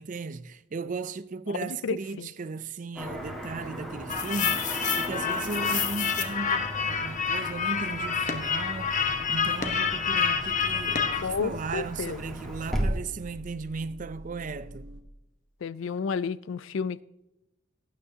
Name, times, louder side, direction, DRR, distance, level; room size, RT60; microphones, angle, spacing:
voice 1, 0.0-14.9, right 4 dB, 40° right, 0.4 m, -36 dB
voice 2, 1.6-2.3 11.2-12.2 15.6-17.0, left 5 dB, 65° left, 0.4 m, -31 dB
Car passing by / Traffic noise roadway noise, 3.0-12.8, equal, ahead, 1.6 m, -38 dB
sound 1, 4.1-11.2, left 6 dB, 35° left, 1.1 m, -28 dB
sound 2, 4.9-5.1 5.5-5.6 5.8-5.9 6.6-15.0, right 1 dB, 65° right, 1.4 m, -48 dB
18.5 x 9.4 x 2.8 m
head